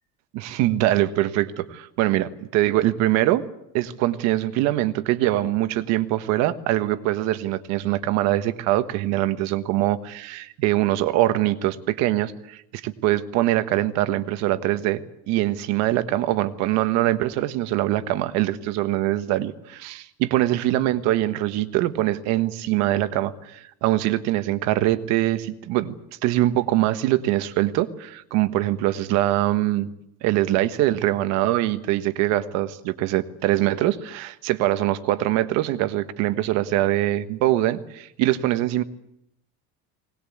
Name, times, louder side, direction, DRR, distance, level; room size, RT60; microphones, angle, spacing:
voice 1, 0.3-3.4 3.7-25.9 26.2-29.9 30.2-38.8, right 15 dB, 60° right, 11 dB, 1.3 m, -23 dB
21.0 x 19.5 x 8.6 m, 0.78 s
cardioid pair, 175°, 30 cm